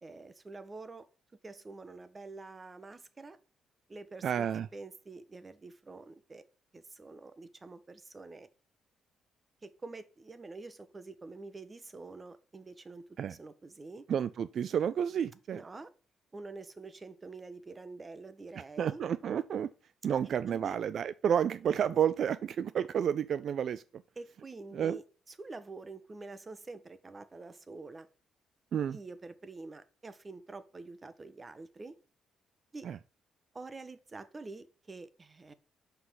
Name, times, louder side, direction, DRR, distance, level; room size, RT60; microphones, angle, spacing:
voice 1, 0.0-1.1 1.4-3.4 3.9-6.4 6.7-8.5 9.6-13.0 13.3-14.1 15.5-15.9 16.3-19.0 20.5-20.8 24.2-28.1 28.9-32.0 32.7-32.9 33.5-35.5, right 3 dB, 25° right, 1.0 m, -47 dB
voice 2, 4.2-4.7 13.2-13.3 14.1-15.6 18.8-19.7 20.0-23.8 24.7-25.0 28.7-29.0 32.8-33.0, right 8 dB, 60° right, 0.3 m, -30 dB
5.8 x 5.7 x 6.2 m
cardioid pair, 90°, 0 cm